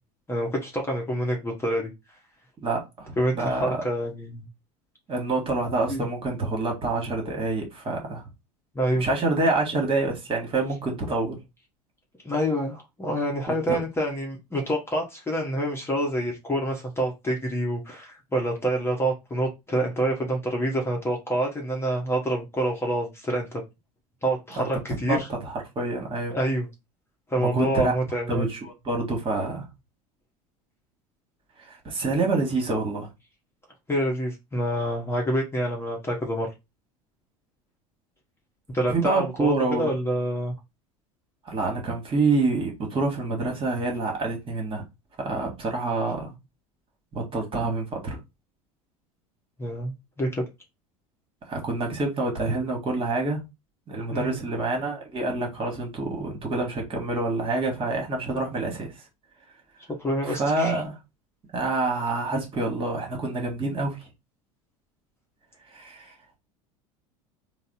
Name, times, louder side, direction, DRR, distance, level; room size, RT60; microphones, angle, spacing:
voice 1, 0.3-1.9 3.2-4.5 5.9-6.1 8.7-9.1 12.2-23.6 24.2-25.3 26.3-26.7 27.3-28.4 33.9-36.5 38.7-40.5 49.6-50.5 54.1-54.4 59.9-60.8, right 1 dB, 15° left, 1.0 m, -27 dB
voice 2, 2.6-3.7 5.1-8.2 9.0-11.4 13.5-13.8 24.6-26.4 27.4-27.9 28.3-29.6 31.6-33.1 38.9-39.9 41.4-44.8 45.2-46.3 47.1-48.2 51.4-53.4 53.9-58.9 60.2-61.0 61.5-64.1 65.7-66.4, right 3 dB, 30° right, 1.5 m, -27 dB
4.0 x 2.1 x 3.9 m
figure-of-eight pair, 70°, 18 cm